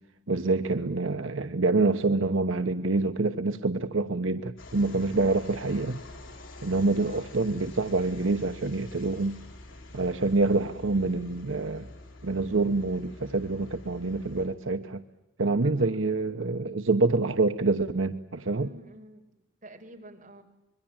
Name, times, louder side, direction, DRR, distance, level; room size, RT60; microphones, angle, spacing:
voice 1, 0.3-6.0 6.6-9.4 9.9-11.9 12.2-15.0 15.4-18.7, right 3 dB, 75° right, 7 dB, 1.1 m, -26 dB
sound 1, 4.6-14.5, left 2 dB, 75° left, 7.6 m, -47 dB
voice 2, 7.0-7.3 15.6-16.2 18.4-19.2 19.6-20.4, right 1 dB, 40° right, 2 dB, 5.1 m, -49 dB
26.5 x 22.5 x 8.9 m, 0.92 s
head